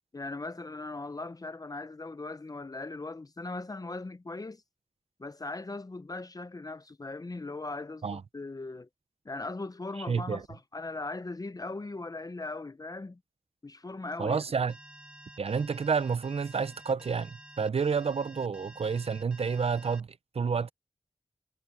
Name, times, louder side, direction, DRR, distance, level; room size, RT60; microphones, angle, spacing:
voice 1, 0.1-4.6 5.2-8.9 9.2-13.2 13.6-14.4, left 3 dB, 35° left, 0.7 m, -39 dB
voice 2, 10.1-10.4 14.2-14.7 15.4-20.1 20.3-20.7, right 5 dB, 75° right, 0.8 m, -29 dB
Alarm, 14.7-20.0, right 1 dB, 10° right, 7.5 m, -51 dB
cardioid pair, 45°, 10 cm